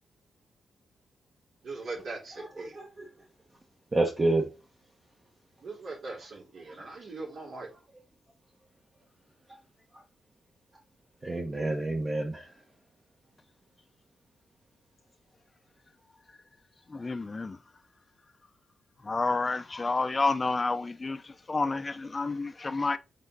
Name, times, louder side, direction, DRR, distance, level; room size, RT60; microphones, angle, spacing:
voice 1, 1.6-2.7 5.6-7.7, right 3 dB, 65° right, 4.0 m, -40 dB
voice 2, 2.3-3.1 3.9-4.5 6.7-6.8 11.2-12.5, right 2 dB, 30° right, 1.4 m, -29 dB
voice 3, 16.9-17.6 19.0-23.0, left 3 dB, 30° left, 0.7 m, -30 dB
7.3 x 3.8 x 4.0 m
cardioid pair, 60°, 0 cm